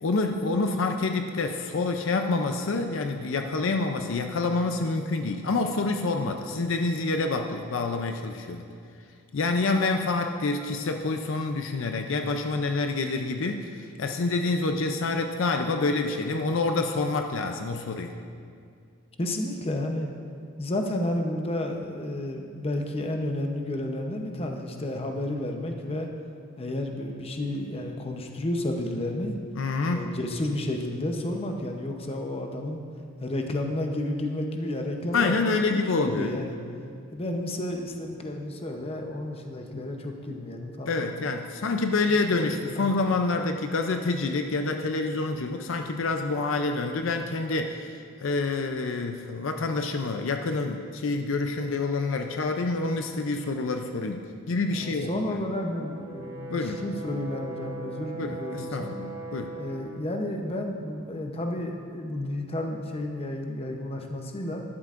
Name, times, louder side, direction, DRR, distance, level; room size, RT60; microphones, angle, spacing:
voice 1, 0.0-8.7 9.3-18.1 29.6-30.0 35.1-36.3 40.9-55.3 56.5-56.8 58.2-59.6, left 3 dB, 65° left, 5 dB, 0.5 m, -27 dB
voice 2, 19.2-20.1 20.6-26.1 26.6-29.3 29.9-32.8 33.2-35.6 35.9-36.6 37.1-41.0 42.3-42.5 42.8-43.0 54.7-58.9 59.5-64.6, left 1 dB, 30° left, 3 dB, 0.8 m, -31 dB
Brass instrument, 55.7-59.9, right 3 dB, 60° right, 2.5 m, -39 dB
12.5 x 11.5 x 2.5 m, 2.3 s
head